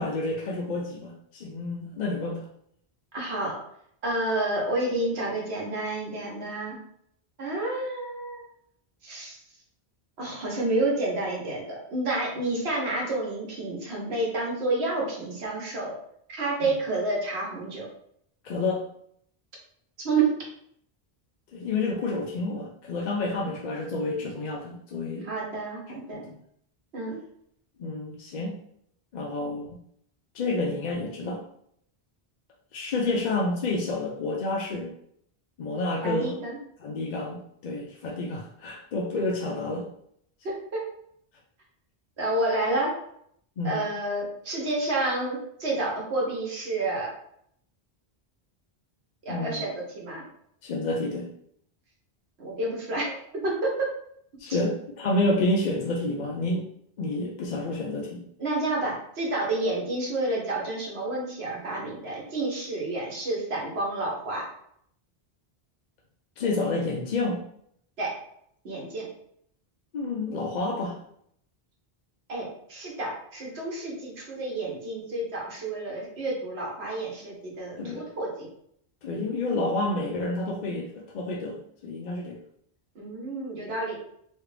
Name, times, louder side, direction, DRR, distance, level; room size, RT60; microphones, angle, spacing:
voice 1, 0.0-2.5 18.4-18.8 21.5-25.3 26.1-26.2 27.8-28.6 29.1-29.8 30.3-31.4 32.7-34.9 35.6-36.3 36.8-39.9 43.6-43.8 49.3-49.6 50.6-51.3 54.4-56.7 57.0-58.2 66.4-67.4 69.9-71.0 77.8-78.0 79.0-82.4, left 2 dB, 55° left, -2 dB, 0.5 m, -29 dB
voice 2, 3.1-3.5 4.0-6.7 7.4-8.5 9.0-9.4 10.2-15.9 16.3-17.8 20.0-20.3 23.3-23.4 25.2-26.3 26.9-27.2 36.0-36.6 40.4-40.8 42.2-42.9 43.6-47.1 49.2-50.2 52.4-53.7 58.4-64.4 68.0-68.1 68.6-69.1 72.3-78.5 82.9-84.0, right 2 dB, 85° right, -2 dB, 1.2 m, -29 dB
3.1 x 2.4 x 3.2 m, 0.69 s
omnidirectional pair, 1.0 m